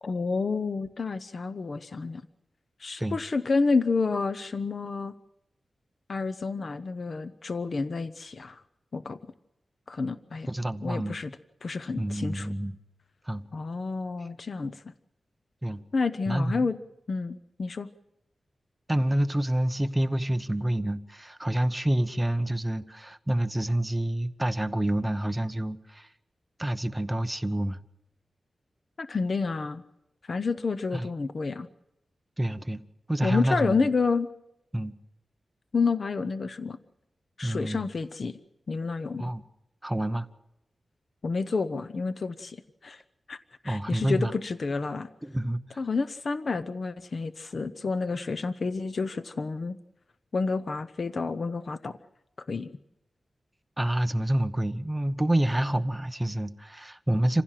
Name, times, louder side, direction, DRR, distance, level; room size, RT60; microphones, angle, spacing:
voice 1, 0.0-2.2 2.8-5.1 6.1-8.6 8.9-9.2 9.9-10.5 10.8-11.3 11.6-12.5 13.5-14.8 15.9-16.8 17.1-17.9 29.0-29.8 30.2-31.7 33.2-34.3 35.7-36.8 37.4-38.4 38.7-39.3 41.2-43.0 43.3-43.4 43.6-45.1 45.8-49.8 50.3-52.0 52.5-52.7, left 4 dB, 50° left, 12 dB, 0.7 m, -29 dB
voice 2, 10.5-11.1 12.0-12.8 13.3-13.4 15.6-15.8 16.3-16.7 18.9-26.1 26.6-27.8 30.9-31.1 32.4-32.8 33.1-33.8 34.7-34.9 37.4-37.9 39.2-39.4 39.8-40.3 43.6-44.3 45.2-45.6 53.8-57.4, right 1 dB, 10° right, 9 dB, 0.9 m, -28 dB
27.0 x 16.0 x 7.5 m, 0.89 s
wide cardioid pair, 150°, 0 cm